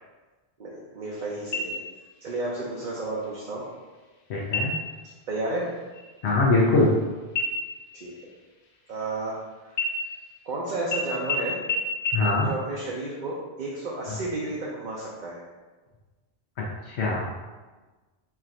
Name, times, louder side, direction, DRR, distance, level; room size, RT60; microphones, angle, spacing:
voice 1, 0.6-1.8 2.2-3.7 5.3-5.7 7.9-8.1 8.9-9.9 10.4-11.6 12.4-15.4, right 2 dB, 50° right, -4 dB, 0.7 m, -32 dB
sound 1, 1.5-2.2 2.6-2.7 3.2-3.8 4.4-5.0 5.4-5.6 5.9-7.0 7.4-9.4 9.7-10.5 10.9-11.0 11.3-11.4 11.7-11.8 12.1-12.2, left 3 dB, 50° left, 0.6 m, -31 dB
voice 2, 4.3-4.7 6.2-6.9 12.1-12.5 16.6-17.2, left 2 dB, 80° left, -4 dB, 1.0 m, -22 dB
4.6 x 2.5 x 4.3 m, 1.3 s
omnidirectional pair, 1.1 m